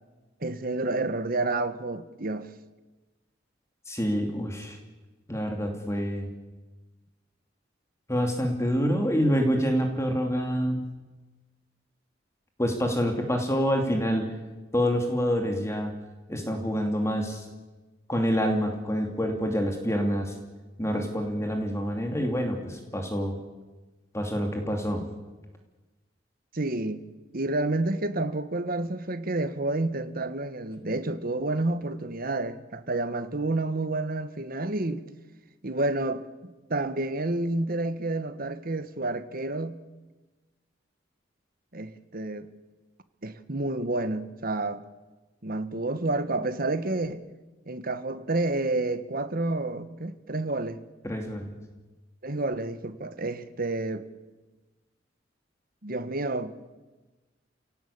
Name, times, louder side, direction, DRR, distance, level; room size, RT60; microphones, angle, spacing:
voice 1, 0.4-2.5 26.5-27.0 27.3-35.1 35.6-39.8 41.7-42.5 43.2-44.8 45.4-47.2 47.7-50.8 52.2-54.1 55.8-56.5, right 2 dB, 50° right, 1.5 m, -29 dB
voice 2, 3.9-4.8 5.3-6.3 8.1-10.8 12.6-14.3 14.7-15.9 16.3-17.5 18.1-20.3 20.8-23.3 24.1-25.0 51.0-51.6, equal, 15° left, 2.8 m, -27 dB
28.5 x 18.0 x 8.7 m
head